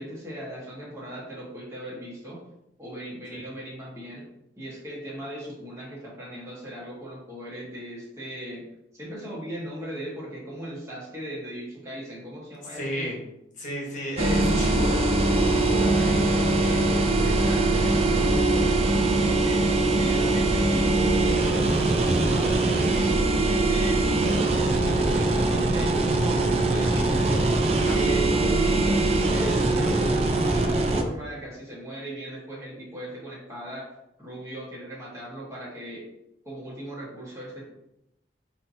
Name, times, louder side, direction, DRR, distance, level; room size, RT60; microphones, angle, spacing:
voice 1, 0.0-2.4 2.8-4.2 4.6-8.6 8.9-13.1 15.3-26.0 26.2-27.6 27.9-33.8 34.2-36.1 36.4-37.6, right 1 dB, 15° right, -6 dB, 1.4 m, -37 dB
voice 2, 12.7-13.2 13.6-15.0 27.8-28.0, equal, 45° left, -2 dB, 1.2 m, -32 dB
sound 1, 14.2-31.0, right 2 dB, 35° right, 0.4 m, -22 dB
5.6 x 2.9 x 2.7 m, 0.83 s
head